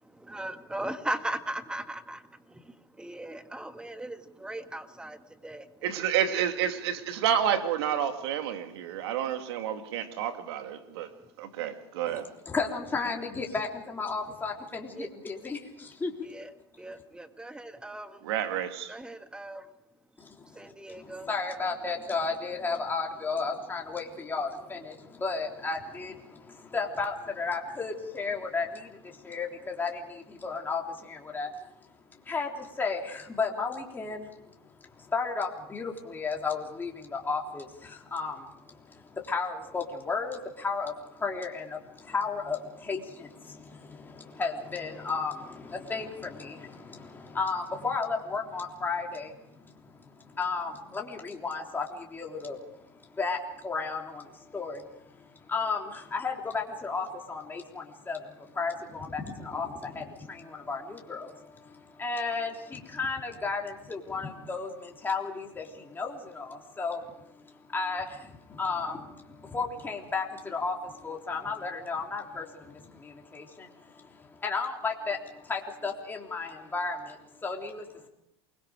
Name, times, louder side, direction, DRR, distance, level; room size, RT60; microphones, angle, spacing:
voice 1, 0.0-5.7 12.9-13.0 15.0-15.1 16.2-16.5 16.8-18.2 18.9-19.7 20.5-21.3, right 1 dB, 5° right, 1.8 m, -38 dB
voice 2, 5.8-11.1 11.4-12.3 18.2-18.9, right 9 dB, 75° right, 2.6 m, -29 dB
voice 3, 12.1-16.1 20.2-31.5 32.1-34.3 34.6-78.1, left 4 dB, 15° left, 3.5 m, -34 dB
28.5 x 21.5 x 4.9 m
supercardioid pair, 110°, 14 cm